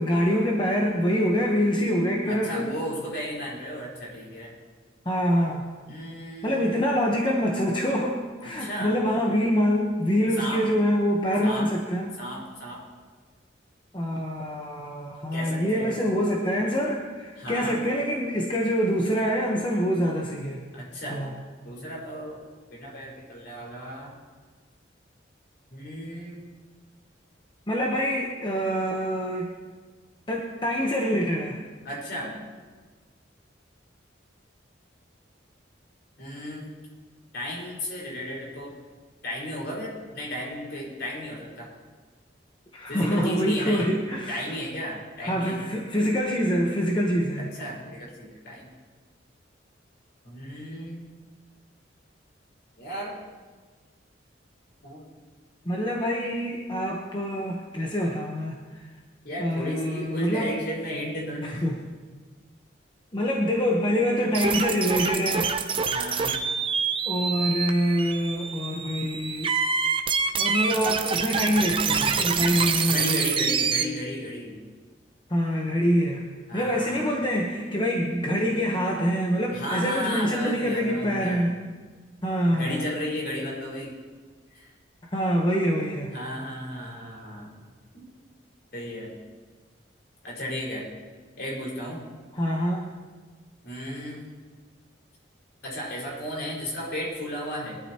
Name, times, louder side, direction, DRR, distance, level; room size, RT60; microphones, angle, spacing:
voice 1, 0.0-2.7 5.0-5.7 6.4-12.1 13.9-20.6 21.1-21.3 27.7-29.5 30.3-31.6 42.7-44.4 45.2-47.5 55.6-58.9 59.4-60.5 61.4-61.8 63.1-65.5 67.1-69.6 70.3-73.3 75.3-76.2 76.5-81.6 82.2-82.8 85.1-86.1 92.3-92.9, equal, 25° left, -1 dB, 1.0 m, -25 dB
voice 2, 2.3-4.5 5.9-6.7 8.4-8.9 10.4-10.7 11.4-11.7 12.2-12.9 15.3-16.0 17.4-17.8 20.7-21.2 21.6-22.4 22.7-24.1 25.7-26.4 31.8-32.4 36.2-36.7 37.3-38.8 39.2-41.7 42.9-43.9 44.3-45.7 47.4-48.7 50.2-51.1 52.8-53.2 54.8-55.1 59.2-61.6 65.9-66.5 72.9-74.6 76.5-77.2 79.5-81.5 82.5-84.0 84.5-84.7 86.1-87.6 87.9-88.0 88.7-89.2 90.2-90.9 91.4-92.1 93.6-94.3 95.6-97.8, equal, 60° left, -4 dB, 5.1 m, -34 dB
sound 1, 64.3-73.8, right 5 dB, 30° right, 0.7 m, -26 dB
22.0 x 12.0 x 3.0 m, 1.5 s
head